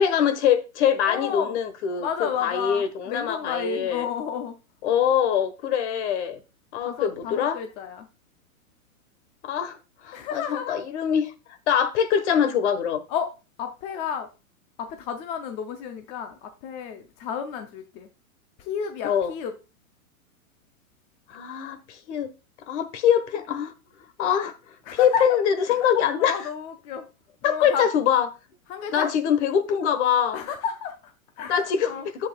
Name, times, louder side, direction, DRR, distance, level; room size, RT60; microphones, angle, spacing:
voice 1, 0.0-2.1 2.4-4.1 4.8-6.4 6.7-7.6 9.4-9.8 10.0-11.3 11.7-13.0 19.0-19.3 21.3-22.3 22.7-23.7 24.2-24.5 24.9-26.4 27.4-28.3 28.9-30.4 31.5-31.9 32.2-32.3, left 8 dB, 50° left, 1.3 m, -23 dB
voice 2, 1.0-1.6 2.0-4.5 6.8-8.1 10.1-10.8 13.1-13.3 13.6-14.3 14.8-18.1 18.6-19.5 24.8-25.2 25.6-25.8 26.2-27.1 27.4-27.9 28.7-29.1 30.3-32.1, left 7 dB, 15° left, 0.4 m, -32 dB
10.0 x 7.7 x 2.3 m
hypercardioid pair, 135°, 42 cm